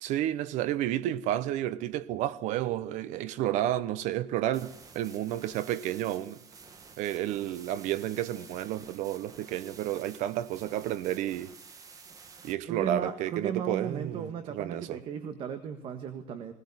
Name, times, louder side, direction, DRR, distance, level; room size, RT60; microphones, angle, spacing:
voice 1, 0.0-6.4 7.0-11.5 12.4-15.0, right 12 dB, 75° right, 1.0 m, -31 dB
sound 1, 4.5-12.5, right 5 dB, 30° right, 1.6 m, -51 dB
voice 2, 12.7-16.5, right 7 dB, 45° right, 1.6 m, -36 dB
20.5 x 18.5 x 9.8 m
cardioid pair, 165°, 12 cm